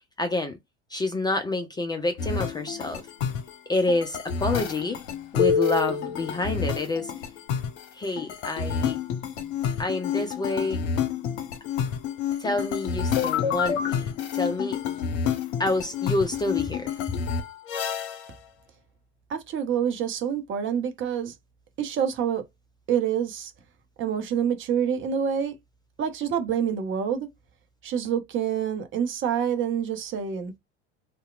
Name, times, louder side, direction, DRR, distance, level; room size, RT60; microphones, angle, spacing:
voice 1, 0.2-0.6 0.9-3.1 3.7-5.0 5.3-7.1 7.9-9.0 9.8-10.8 12.4-14.8 15.6-16.9, left 2 dB, 10° left, 0.3 m, -28 dB
sound 1, 2.2-18.3, left 7 dB, 65° left, 0.7 m, -28 dB
voice 2, 19.3-21.3 21.8-22.4 22.9-23.5 24.0-25.6 26.0-27.3 27.8-30.5, right 8 dB, 35° right, 0.6 m, -27 dB
2.7 x 2.1 x 2.4 m
hypercardioid pair, 75°, 36 cm